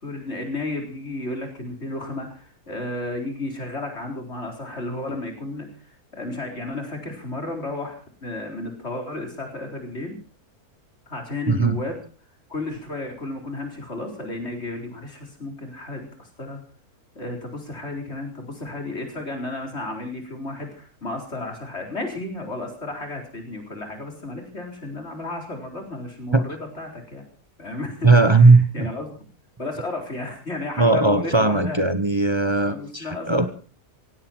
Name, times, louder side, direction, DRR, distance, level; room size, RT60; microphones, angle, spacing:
voice 1, 0.0-10.2 11.1-12.0 12.5-16.6 17.1-27.2 27.6-29.2 29.6-31.8 32.7-33.5, left 2 dB, 45° left, 3 dB, 4.5 m, -33 dB
voice 2, 28.0-28.9 30.8-33.4, right 3 dB, 20° right, 10 dB, 0.9 m, -17 dB
17.5 x 16.5 x 4.5 m, 0.38 s
omnidirectional pair, 1.6 m